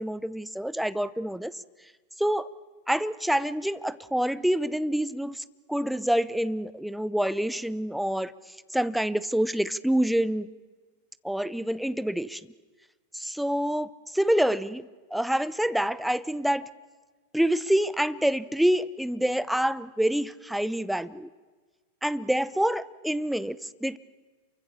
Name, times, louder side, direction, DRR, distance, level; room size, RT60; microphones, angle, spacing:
voice 1, 0.0-1.5 2.2-2.5 2.9-8.3 8.7-10.5 11.2-12.4 13.1-16.7 17.3-21.3 22.0-24.0, equal, ahead, 16 dB, 0.7 m, -27 dB
28.0 x 24.0 x 7.0 m, 1.4 s
figure-of-eight pair, 90°, 0 cm